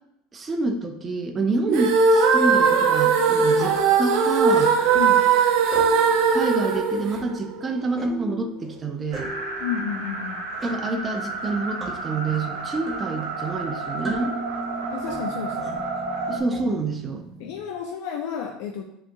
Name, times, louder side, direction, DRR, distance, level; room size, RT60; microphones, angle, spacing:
voice 1, 0.3-4.7 6.3-9.3 10.6-14.3 16.3-17.3, right 3 dB, 25° right, 5 dB, 0.5 m, -27 dB
sound 1, 1.7-7.8, right 5 dB, 65° right, 0.6 m, -19 dB
sound 2, 2.3-17.6, right 2 dB, ahead, 1.1 m, -40 dB
voice 2, 4.9-5.3 9.6-10.4 14.9-15.8 17.4-18.8, left 8 dB, 75° left, 2 dB, 0.4 m, -31 dB
sound 3, 9.1-16.4, right 3 dB, 85° right, 1.0 m, -32 dB
7.6 x 2.8 x 2.3 m, 0.79 s
supercardioid pair, 120°, 0 cm